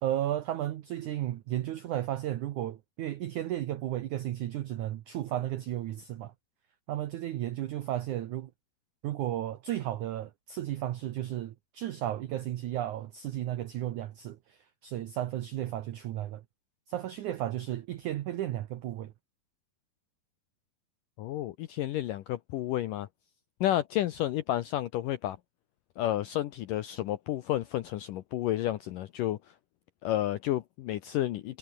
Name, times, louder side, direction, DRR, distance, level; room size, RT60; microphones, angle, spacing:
voice 1, 0.0-6.3 6.9-8.5 9.0-16.4 16.9-19.1, right 13 dB, 85° right, 1.7 m, -34 dB
voice 2, 21.2-23.1 23.6-25.4 26.0-29.4 30.0-31.6, left 13 dB, 80° left, 1.9 m, -31 dB
omnidirectional pair, 4.9 m